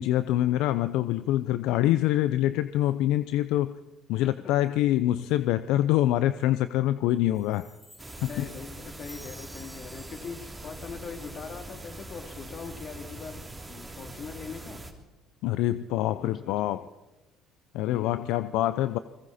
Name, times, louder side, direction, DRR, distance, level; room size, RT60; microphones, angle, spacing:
voice 1, 0.0-3.7 4.1-7.6 8.2-8.3 15.4-16.8 17.7-19.0, left 14 dB, 75° left, 13 dB, 0.6 m, -25 dB
voice 2, 4.1-4.5 8.3-14.8 15.9-16.9 17.8-18.5, left 5 dB, 50° left, 5 dB, 2.9 m, -42 dB
Chime, 7.3-11.8, left 1 dB, 5° left, 2.3 m, -52 dB
sound 1, 8.0-14.9, right 2 dB, 15° right, 3.2 m, -43 dB
29.0 x 21.0 x 4.3 m, 1.1 s
supercardioid pair, 85°, 0 cm